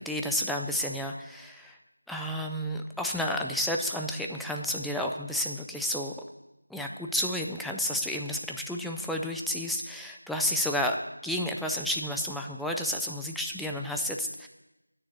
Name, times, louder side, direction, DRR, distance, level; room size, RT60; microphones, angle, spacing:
voice 1, 0.0-1.8 2.1-6.1 6.7-11.0 11.2-14.5, left 1 dB, ahead, 1 dB, 0.3 m, -31 dB
10.5 x 8.8 x 7.8 m, 0.99 s
figure-of-eight pair, 175°, 0 cm